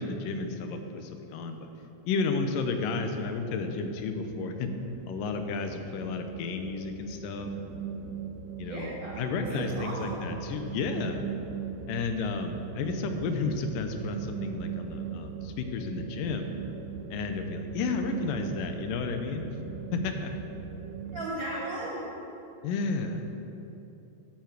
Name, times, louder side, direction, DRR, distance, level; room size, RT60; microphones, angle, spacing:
voice 1, 0.0-1.7 2.1-4.7 5.1-7.7 8.6-8.9 9.2-11.2 11.9-16.5 17.1-19.5 19.9-20.3 22.6-23.3, left 4 dB, 85° left, 6 dB, 2.4 m, -32 dB
sound 1, 3.2-21.3, right 8 dB, 80° right, 2.0 m, -40 dB
voice 2, 8.6-10.4 21.1-22.0, right 1 dB, 45° right, -7 dB, 1.7 m, -36 dB
11.5 x 5.8 x 7.4 m, 3.0 s
omnidirectional pair, 3.8 m